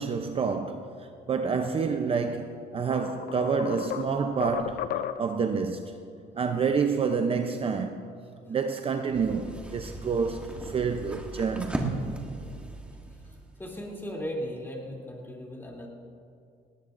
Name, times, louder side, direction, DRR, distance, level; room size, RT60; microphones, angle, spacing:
voice 1, 0.0-4.9 5.2-6.0 6.3-8.0 8.5-11.9, right 5 dB, 35° right, 0.6 m, -28 dB
sound 1, 2.3-2.4 2.9-5.5, left 10 dB, 65° left, 0.5 m, -35 dB
sound 2, 9.1-14.2, right 2 dB, 5° right, 1.4 m, -37 dB
voice 2, 13.2-15.9, equal, 15° left, 3.0 m, -37 dB
18.5 x 17.5 x 2.6 m
cardioid pair, 110°, 17 cm